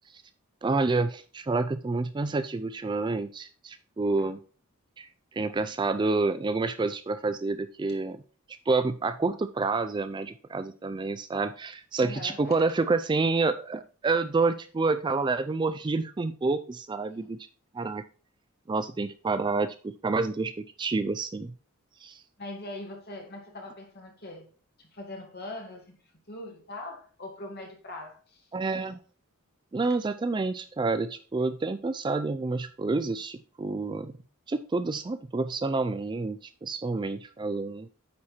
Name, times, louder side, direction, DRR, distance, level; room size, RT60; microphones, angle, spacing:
voice 1, 0.6-4.4 5.0-5.1 5.3-8.2 8.7-17.4 17.7-18.0 18.7-21.5 22.0-22.2 28.5-29.0 29.7-34.1 34.5-37.9, right 3 dB, 20° right, 0.3 m, -28 dB
voice 2, 12.0-12.6 17.2-17.3 22.4-24.5 24.8-26.0 26.3-28.5, left 1 dB, 45° left, 2.3 m, -41 dB
9.5 x 4.3 x 4.3 m
head